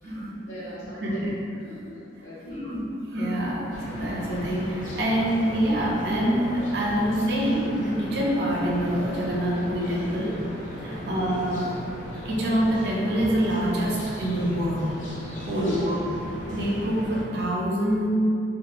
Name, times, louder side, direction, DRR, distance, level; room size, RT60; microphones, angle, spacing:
voice 1, 0.0-2.7 10.8-11.1 15.5-15.9, equal, 85° left, -11 dB, 1.0 m, -42 dB
voice 2, 2.5-2.8 3.1-10.3 10.8-11.7 12.2-14.9 15.4-16.0 16.5-18.1, equal, 55° right, -4 dB, 0.4 m, -25 dB
sound 1, 3.7-17.2, left 1 dB, 40° left, 0.4 m, -37 dB
2.8 x 2.0 x 2.3 m, 2.6 s
head